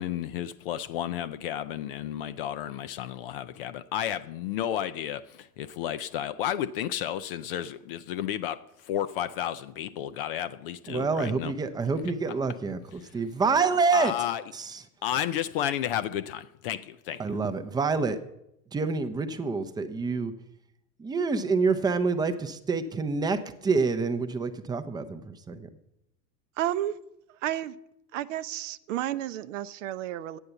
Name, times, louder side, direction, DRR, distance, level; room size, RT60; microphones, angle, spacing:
voice 1, 0.0-11.5 13.9-14.4 15.0-17.3, left 11 dB, 35° left, 0.4 m, -32 dB
voice 2, 10.9-14.1 14.5-14.8 17.2-18.2 18.7-20.3 21.0-25.7, right 4 dB, 10° right, 0.6 m, -27 dB
voice 3, 26.6-27.0 27.4-27.8 28.1-30.4, right 13 dB, 50° right, 0.6 m, -31 dB
10.0 x 8.6 x 6.8 m
figure-of-eight pair, 90°, 49 cm